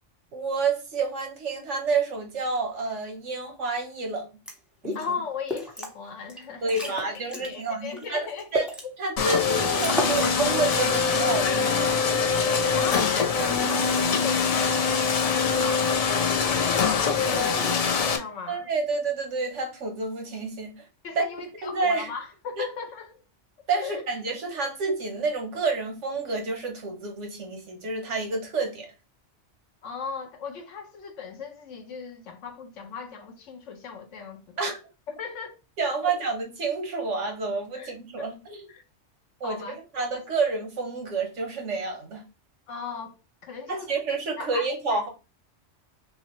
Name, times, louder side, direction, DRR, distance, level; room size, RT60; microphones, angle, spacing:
voice 1, 0.3-4.2 4.8-5.0 6.6-8.2 8.5-8.7 9.0-12.0 18.5-20.7 21.1-21.2 21.6-22.1 22.6-22.7 23.7-28.9 34.6-34.8 35.8-38.6 39.4-42.2 43.7-45.1, right 4 dB, 75° right, 1.4 m, -29 dB
sound 1, 4.5-4.6 4.8-5.1 5.5-5.9 6.3-6.4 6.7-7.5 8.0-8.8 9.3-9.4 9.7-10.4 10.6-11.0, equal, ahead, 0.8 m, -31 dB
voice 2, 4.9-8.5 12.3-16.0 16.4-18.7 21.0-23.2 23.8-24.0 29.8-34.6 35.1-35.6 36.0-36.1 37.7-38.3 38.7-38.8 39.4-39.8 42.7-45.0, left 5 dB, 85° left, 1.2 m, -38 dB
sound 2, 9.2-18.2, left 5 dB, 65° left, 0.3 m, -23 dB
6.0 x 2.1 x 3.0 m
omnidirectional pair, 1.2 m